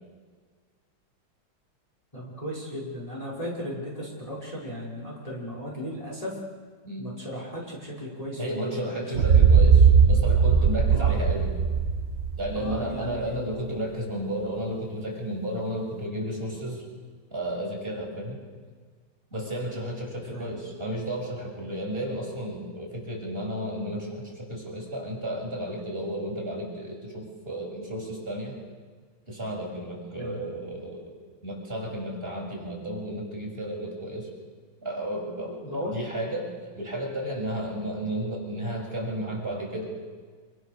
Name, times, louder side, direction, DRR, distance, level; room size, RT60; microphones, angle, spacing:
voice 1, 2.1-6.4 7.0-9.4 10.9-11.2 12.6-13.4 20.3-20.6 30.2-30.4 35.6-36.0, equal, 15° left, -4 dB, 6.0 m, -36 dB
voice 2, 8.4-11.5 12.4-16.8 17.3-18.4 19.3-28.6 29.3-31.1 31.4-34.3 34.8-39.8, right 1 dB, 25° right, -2 dB, 7.1 m, -33 dB
sound 1, 9.2-13.0, right 6 dB, 45° right, 0.9 m, -19 dB
27.5 x 27.5 x 6.8 m, 1.5 s
omnidirectional pair, 2.2 m